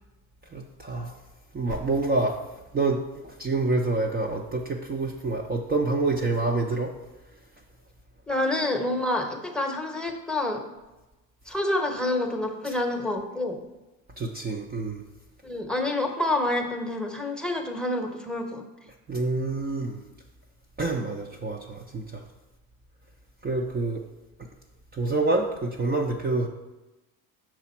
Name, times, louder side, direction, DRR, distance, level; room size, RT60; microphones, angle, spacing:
voice 1, 0.5-1.1 1.5-2.4 2.7-6.9 12.7-12.8 14.2-15.0 19.1-20.0 20.8-22.2 23.4-24.0 24.9-26.5, right 3 dB, 25° right, 0 dB, 0.6 m, -27 dB
voice 2, 8.3-10.6 11.5-13.6 15.4-18.6, left 2 dB, ahead, 3 dB, 1.0 m, -28 dB
6.1 x 4.9 x 4.3 m, 1.1 s
supercardioid pair, 80°, 40 cm